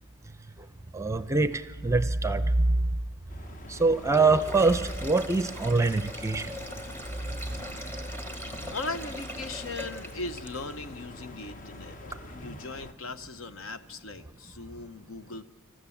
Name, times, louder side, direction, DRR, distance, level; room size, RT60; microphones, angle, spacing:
voice 1, 0.9-1.5 1.8-2.4 3.8-6.4, right 3 dB, 15° right, 12 dB, 0.6 m, -24 dB
sound 1, 3.3-12.9, left 1 dB, 35° left, 0.9 m, -44 dB
Sink (filling or washing), 4.0-10.8, equal, 10° left, 1.4 m, -41 dB
voice 2, 8.7-12.0 12.3-15.4, left 3 dB, 65° left, 11 dB, 0.9 m, -38 dB
26.5 x 14.5 x 7.2 m, 1.4 s
head